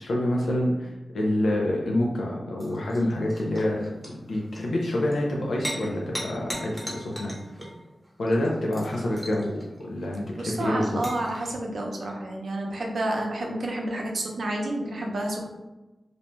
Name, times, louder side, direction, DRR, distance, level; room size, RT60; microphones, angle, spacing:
voice 1, 0.0-7.3 8.2-11.0, left 1 dB, 80° left, -3 dB, 0.4 m, -27 dB
sound 1, 2.6-11.5, equal, 5° right, 0.8 m, -39 dB
voice 2, 10.4-15.5, right 1 dB, 70° right, 0 dB, 0.6 m, -30 dB
2.6 x 2.2 x 3.0 m, 1.1 s
wide cardioid pair, 90°, 0 cm